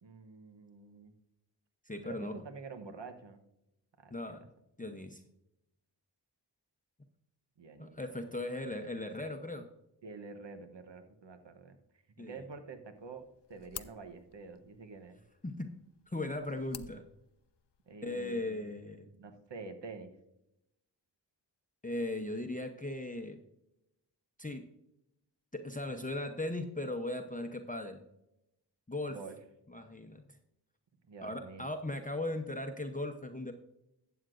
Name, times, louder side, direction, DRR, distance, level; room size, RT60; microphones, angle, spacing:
voice 1, 0.0-1.1 2.0-3.4 4.0-4.5 7.6-8.0 10.0-11.8 12.2-13.2 13.5-15.2 17.9-18.7 19.2-20.1 29.1-29.4 31.1-31.7, right 4 dB, 80° right, 8 dB, 1.0 m, -48 dB
voice 2, 1.9-2.3 4.1-4.4 4.8-5.2 7.8-9.7 12.2-12.3 15.4-15.7 16.1-17.0 18.0-19.1 21.8-23.4 24.4-24.6 25.5-28.0 28.9-29.2 29.7-30.2 31.2-33.5, left 2 dB, 20° left, 5 dB, 0.8 m, -38 dB
sound 1, 13.0-18.0, left 10 dB, 70° left, 0.6 m, -52 dB
12.5 x 8.1 x 2.5 m, 0.86 s
wide cardioid pair, 55°, 43 cm